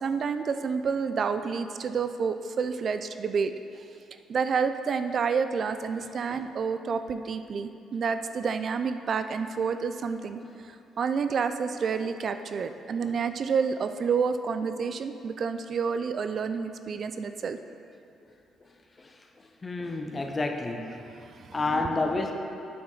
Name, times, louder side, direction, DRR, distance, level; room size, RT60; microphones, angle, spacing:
voice 1, 0.0-3.5 4.3-10.4 11.0-17.6 21.2-21.9, right 5 dB, 55° right, 9 dB, 0.3 m, -29 dB
voice 2, 19.6-20.9 21.5-22.3, left 3 dB, 30° left, 4 dB, 0.7 m, -30 dB
8.3 x 6.0 x 3.9 m, 2.6 s
cardioid pair, 90°, 0 cm